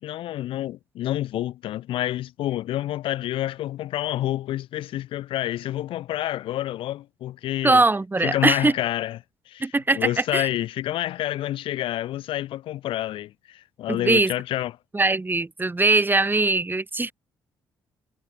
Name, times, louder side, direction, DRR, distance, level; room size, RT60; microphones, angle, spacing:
voice 1, 0.0-7.8 8.2-9.2 9.5-14.7, left 13 dB, 65° left, 6.7 m, -28 dB
voice 2, 7.6-8.7 9.6-10.5 13.9-14.3 14.9-17.1, right 2 dB, 20° right, 6.3 m, -21 dB
hypercardioid pair, 55°, 9 cm